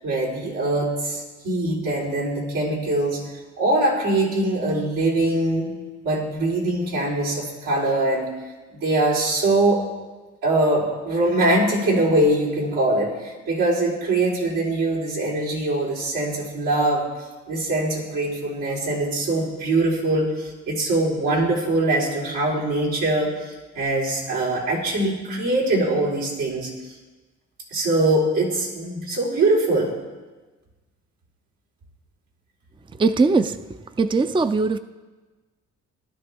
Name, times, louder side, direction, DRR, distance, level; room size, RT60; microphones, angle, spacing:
voice 1, 0.0-3.2 3.6-5.7 6.0-8.3 8.7-9.8 10.4-17.1 17.5-26.9 27.7-29.9, right 2 dB, 90° right, -4 dB, 4.0 m, -22 dB
voice 2, 33.0-33.6 34.0-34.8, right 3 dB, 15° right, 11 dB, 0.5 m, -19 dB
18.5 x 12.0 x 3.5 m, 1.2 s
cardioid pair, 80°, 29 cm